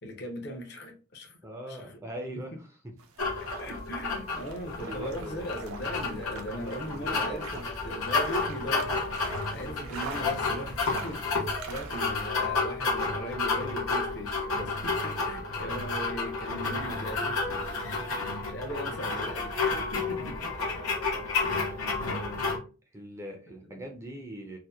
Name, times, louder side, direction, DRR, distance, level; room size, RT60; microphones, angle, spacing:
voice 1, 0.0-1.4 1.7-2.0 3.6-8.9 9.5-17.8 18.4-19.6 19.9-20.4 22.0-22.6 23.6-23.8, equal, 50° left, 2 dB, 0.6 m, -39 dB
voice 2, 1.4-2.9 4.8-5.5 6.3-7.7 20.2-20.3 21.5-21.7 22.9-24.6, right 1 dB, 15° right, 2 dB, 0.3 m, -42 dB
sound 1, 3.0-12.1, right 4 dB, 85° right, 0.5 m, -45 dB
sound 2, 3.2-22.6, left 3 dB, 85° left, 0.8 m, -31 dB
2.7 x 2.1 x 2.2 m, 0.34 s
head